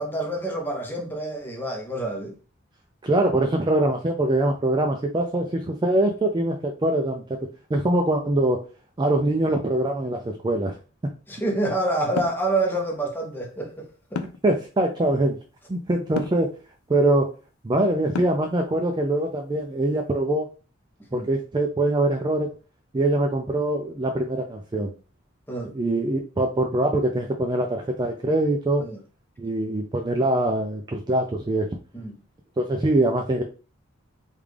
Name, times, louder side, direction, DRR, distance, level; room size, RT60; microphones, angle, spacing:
voice 1, 0.0-2.4 11.3-14.2 21.1-21.3 25.5-25.8 28.8-29.0 31.9-32.1, right 2 dB, 10° left, 0.7 m, -27 dB
voice 2, 3.0-7.4 7.7-8.6 9.0-10.8 14.4-15.4 15.7-16.5 16.9-17.3 17.6-20.5 21.1-22.5 22.9-24.9 25.7-28.8 29.4-31.7 32.6-33.4, right 1 dB, 20° right, 0.3 m, -23 dB
sound 1, 12.2-12.5 14.2-14.5 16.2-16.5 18.1-18.5, left 5 dB, 90° left, 0.4 m, -30 dB
3.6 x 2.4 x 3.2 m
head